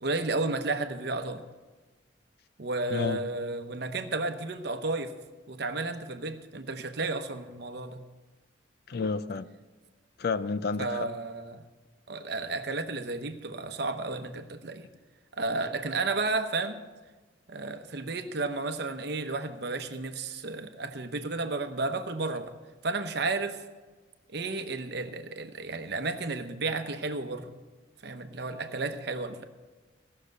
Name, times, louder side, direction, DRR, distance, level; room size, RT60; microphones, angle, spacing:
voice 1, 0.0-1.4 2.6-5.1 5.5-8.0 10.8-11.6 12.1-14.8 15.3-16.8 17.5-22.5 22.8-23.6 24.3-27.5 28.0-29.4, right 3 dB, 55° right, 8 dB, 0.9 m, -32 dB
voice 2, 2.9-3.2 8.9-9.5 10.2-11.1, left 4 dB, 55° left, 14 dB, 0.4 m, -30 dB
17.0 x 6.6 x 6.5 m, 1.3 s
head